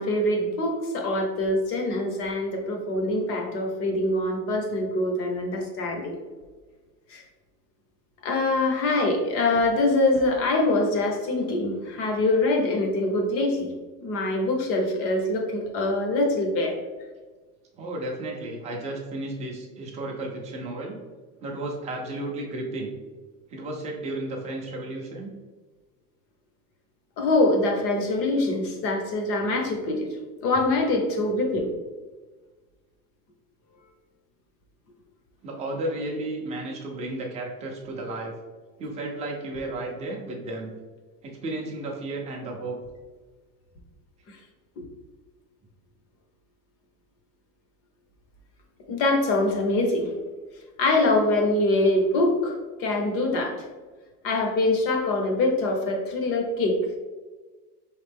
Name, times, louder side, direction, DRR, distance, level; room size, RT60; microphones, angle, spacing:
voice 1, 0.0-6.1 7.1-7.2 8.2-13.7 14.0-16.8 27.2-30.1 30.4-31.7 48.9-50.1 50.8-53.7 54.2-57.0, left 2 dB, 30° left, 2 dB, 0.6 m, -24 dB
voice 2, 17.8-21.0 21.4-22.9 23.5-25.3 35.4-38.3 38.8-40.7 41.2-42.8, right 2 dB, 15° right, 0 dB, 0.5 m, -33 dB
4.7 x 3.2 x 3.3 m, 1.4 s
supercardioid pair, 160°, 46 cm